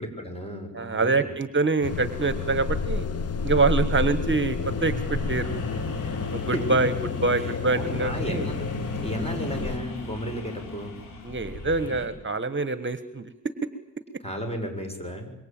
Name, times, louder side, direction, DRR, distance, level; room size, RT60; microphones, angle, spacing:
voice 1, 0.0-1.3 6.2-6.7 7.4-7.5 7.8-8.7 9.0-11.0 14.2-15.3, equal, 20° left, 5 dB, 6.4 m, -34 dB
voice 2, 0.7-3.1 3.4-5.5 6.3-6.9 7.2-8.5 11.2-13.2, right 3 dB, 35° right, 12 dB, 1.3 m, -25 dB
sound 1, 1.8-9.8, left 5 dB, 50° left, 1.2 m, -30 dB
sound 2, 4.6-12.1, left 1 dB, 85° left, 6.7 m, -36 dB
26.0 x 23.0 x 9.0 m, 0.84 s
wide cardioid pair, 110°, 32 cm